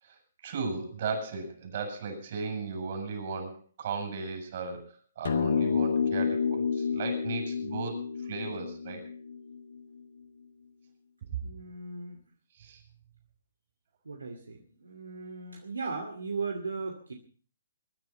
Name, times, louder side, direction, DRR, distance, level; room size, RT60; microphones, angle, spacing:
voice 1, 0.0-9.1 12.5-12.8, right 4 dB, 50° right, 4 dB, 7.1 m, -36 dB
sound 1, 5.3-9.8, left 6 dB, 70° left, 2.0 m, -29 dB
voice 2, 11.4-12.2 14.0-17.1, right 4 dB, 85° right, 4 dB, 2.4 m, -37 dB
22.0 x 10.5 x 5.6 m, 0.40 s
hypercardioid pair, 135°, 0 cm